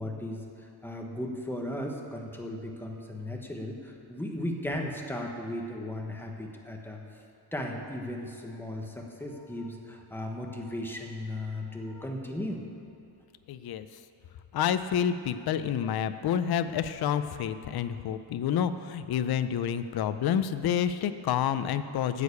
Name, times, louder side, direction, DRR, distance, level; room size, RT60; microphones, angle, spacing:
voice 1, 0.0-7.0 7.5-12.6, left 1 dB, 5° left, 1 dB, 1.0 m, -36 dB
voice 2, 13.5-13.9 14.5-22.2, left 9 dB, 55° left, 11 dB, 0.5 m, -29 dB
9.9 x 6.5 x 8.3 m, 2.7 s
wide cardioid pair, 165°, 44 cm